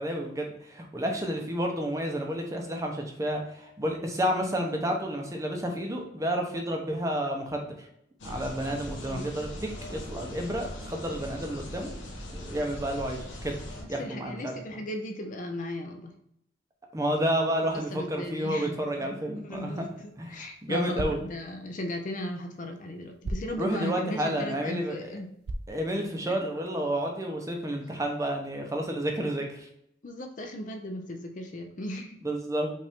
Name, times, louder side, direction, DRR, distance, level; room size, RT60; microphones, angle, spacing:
voice 1, 0.0-7.9 8.2-11.9 12.3-13.6 13.9-14.5 16.9-19.9 20.2-21.2 23.6-25.1 25.7-29.7 32.2-32.7, equal, 15° right, 2 dB, 0.7 m, -30 dB
sound 1, 8.2-13.8, left 1 dB, 80° left, 1.0 m, -40 dB
voice 2, 13.8-16.1 17.7-19.1 19.4-25.3 26.2-26.4 30.0-32.2, left 1 dB, 40° left, 5 dB, 0.5 m, -37 dB
sound 2, 19.7-26.6, right 1 dB, 55° right, 0.4 m, -42 dB
5.3 x 2.6 x 3.4 m, 0.75 s
head